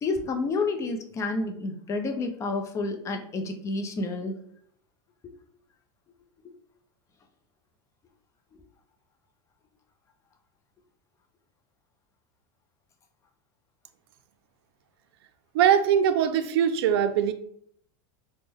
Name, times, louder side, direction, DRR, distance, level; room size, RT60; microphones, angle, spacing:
voice 1, 0.0-4.4 5.2-5.3, left 3 dB, 25° left, 5 dB, 0.4 m, -30 dB
voice 2, 15.5-17.3, right 9 dB, 85° right, 9 dB, 0.4 m, -21 dB
3.3 x 2.0 x 3.4 m, 0.65 s
supercardioid pair, 140°, 13 cm